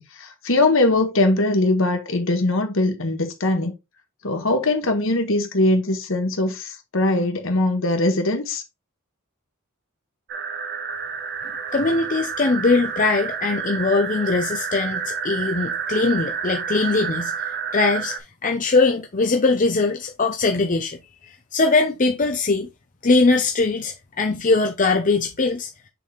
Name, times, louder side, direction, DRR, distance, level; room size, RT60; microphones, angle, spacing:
voice 1, 0.0-3.7 4.2-8.6, left 2 dB, 65° left, 1.5 m, -21 dB
sound 1, 10.3-18.2, right 6 dB, 50° right, 0.8 m, -29 dB
voice 2, 11.7-18.2 18.4-21.0 21.5-22.7 23.0-25.7, left 3 dB, 40° left, 0.7 m, -21 dB
6.6 x 4.2 x 3.4 m
head